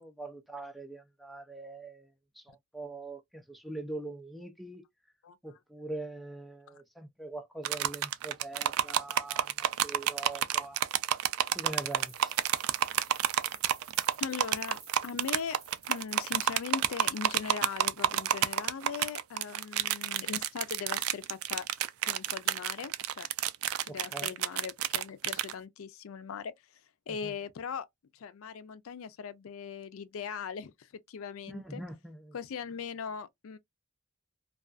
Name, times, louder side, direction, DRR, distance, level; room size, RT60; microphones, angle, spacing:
voice 1, 0.0-4.9 5.4-10.8 11.5-12.4 23.9-24.3 27.2-27.3 31.5-32.3, right 2 dB, ahead, 0.3 m, -43 dB
sound 1, 7.6-25.5, right 11 dB, 90° right, 0.3 m, -30 dB
sound 2, 11.7-17.4, right 5 dB, 50° right, 1.1 m, -54 dB
voice 2, 14.2-14.8 15.0-15.6 15.9-21.7 22.0-23.3 23.8-26.5 27.1-27.9 28.1-31.8 32.3-33.6, left 6 dB, 80° left, 0.4 m, -39 dB
2.4 x 2.3 x 2.3 m
head